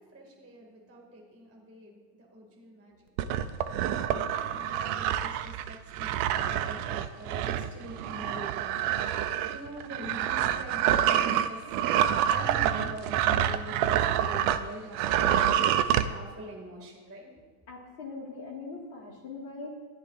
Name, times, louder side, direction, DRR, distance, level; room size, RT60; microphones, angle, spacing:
voice 1, 0.0-3.2 4.0-17.4, right 1 dB, 5° right, 0 dB, 1.4 m, -44 dB
sound 1, 3.2-14.6 14.9-16.1, right 10 dB, 80° right, 1.6 m, -27 dB
voice 2, 17.7-19.7, left 4 dB, 45° left, -2 dB, 2.4 m, -41 dB
19.0 x 13.5 x 2.5 m, 1.5 s
omnidirectional pair, 3.4 m